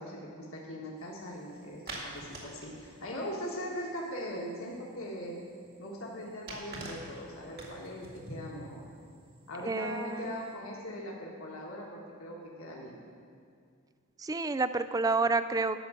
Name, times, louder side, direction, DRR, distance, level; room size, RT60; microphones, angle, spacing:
voice 1, 0.0-5.4 5.8-8.8 9.5-13.0, equal, 70° left, -3 dB, 1.6 m, -40 dB
sound 1, 1.0-10.5, right 2 dB, 50° right, 2.0 m, -48 dB
voice 2, 9.6-10.3 14.2-15.8, right 3 dB, 15° right, 12 dB, 0.3 m, -29 dB
11.5 x 6.0 x 7.5 m, 2.3 s
head